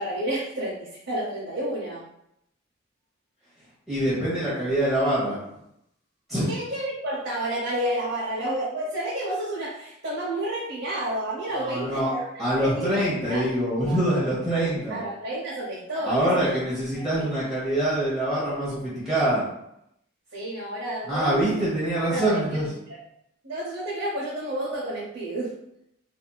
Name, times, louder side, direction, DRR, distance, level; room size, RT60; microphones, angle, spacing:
voice 1, 0.0-2.0 6.5-12.9 13.3-13.5 13.8-14.0 14.9-16.6 16.9-17.0 20.3-21.4 22.1-22.7 23.4-25.5, right 1 dB, 70° right, -6 dB, 0.9 m, -30 dB
voice 2, 3.9-5.4 6.3-6.5 11.5-12.1 12.4-15.0 16.0-19.4 21.0-22.7, right 1 dB, ahead, -10 dB, 0.9 m, -25 dB
4.2 x 2.7 x 2.3 m, 0.79 s
head